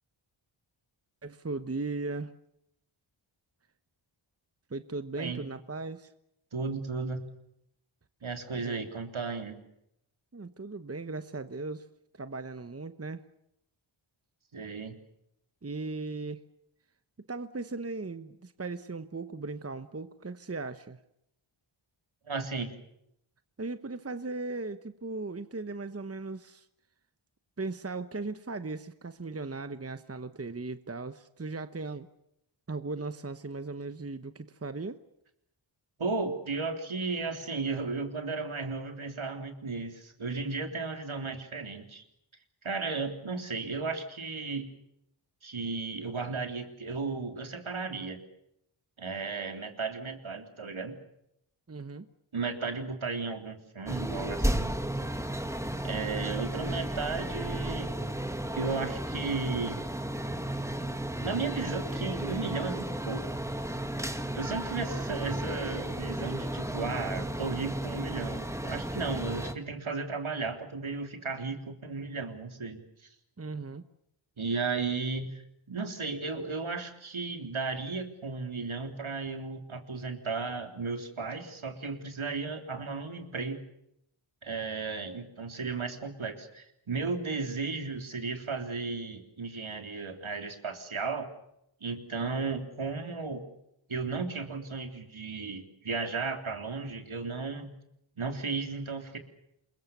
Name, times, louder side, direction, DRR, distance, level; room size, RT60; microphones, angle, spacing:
voice 1, 1.2-2.3 4.7-6.1 8.6-8.9 10.3-11.9 12.1-13.2 15.6-16.4 17.3-21.0 23.6-26.7 27.6-32.1 32.7-35.0 51.7-52.1 73.4-73.9, right 3 dB, 30° right, 11 dB, 1.1 m, -37 dB
voice 2, 5.2-5.5 6.5-7.2 8.2-9.6 14.5-14.9 22.3-22.7 36.0-42.0 42.6-44.7 45.4-48.2 49.0-51.0 52.3-54.7 55.8-57.9 58.6-59.8 61.2-63.2 64.3-73.1 74.4-75.4 75.7-83.6 84.4-91.3 91.8-93.5 93.9-97.7 98.2-99.2, right 4 dB, 70° right, 5 dB, 3.7 m, -34 dB
sound 1, 53.9-69.5, right 1 dB, 5° right, 2.0 m, -34 dB
28.0 x 22.5 x 6.9 m, 0.78 s
wide cardioid pair, 80°, 49 cm